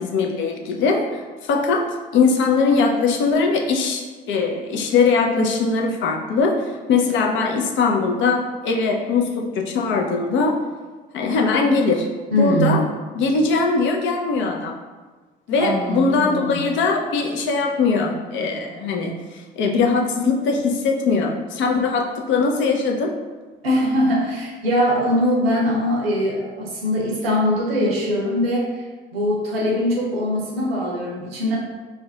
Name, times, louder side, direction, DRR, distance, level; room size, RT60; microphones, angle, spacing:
voice 1, 0.0-10.6 11.1-12.1 12.4-12.8 13.1-14.8 15.5-19.1 19.6-23.1, left 4 dB, 40° left, 1 dB, 0.4 m, -21 dB
voice 2, 12.3-12.9 15.6-16.6 23.6-28.9 29.1-31.6, equal, 80° right, -3 dB, 0.6 m, -21 dB
2.4 x 2.1 x 3.7 m, 1.3 s
figure-of-eight pair, 55°, 29 cm